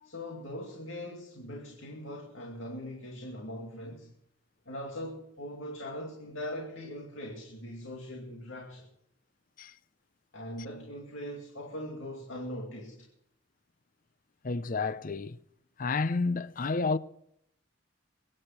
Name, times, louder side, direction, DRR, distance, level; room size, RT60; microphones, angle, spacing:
voice 1, 0.0-4.1 4.7-8.9 10.3-13.1, left 1 dB, 70° left, 2.5 m, -41 dB
voice 2, 14.4-15.4 15.8-17.0, left 4 dB, 40° left, 0.6 m, -30 dB
22.5 x 9.9 x 5.9 m
head